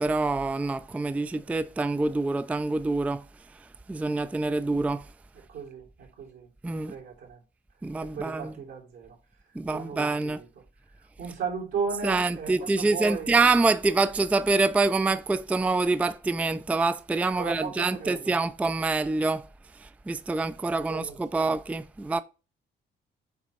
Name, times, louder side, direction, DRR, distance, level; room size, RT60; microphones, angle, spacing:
voice 1, 0.0-3.2 3.9-5.1 6.6-7.0 7.8-8.5 9.6-10.4 12.0-19.5 19.7-22.2, right 3 dB, 5° right, 0.3 m, -26 dB
voice 2, 5.3-6.5 6.9-7.4 8.0-9.2 9.7-10.5 11.2-13.4 17.4-18.3 20.9-21.4, right 5 dB, 80° right, 3.0 m, -36 dB
8.0 x 3.1 x 4.8 m
cardioid pair, 90°, 20 cm